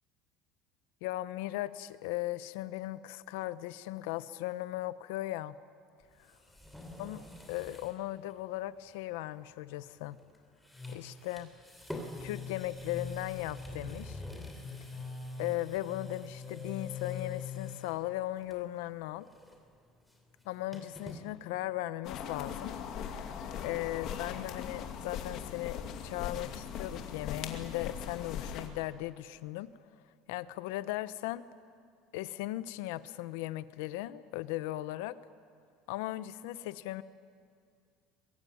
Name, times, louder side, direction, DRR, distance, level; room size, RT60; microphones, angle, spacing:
voice 1, 1.0-5.6 7.0-7.2 7.5-10.2 10.9-11.5 12.2-14.2 15.4-19.3 20.4-22.7 23.6-29.7 30.3-31.4 32.1-35.2 35.9-37.0, left 16 dB, 85° left, 15 dB, 0.9 m, -37 dB
sound 1, 6.0-8.0 8.3-8.4 10.1-10.4 10.6-18.0 18.4-18.8 19.1-21.2, left 4 dB, 5° left, 3.2 m, -44 dB
sound 2, 22.0-28.7, left 8 dB, 45° left, 2.5 m, -40 dB
24.0 x 22.5 x 9.5 m, 2.2 s
cardioid pair, 155°, 0 cm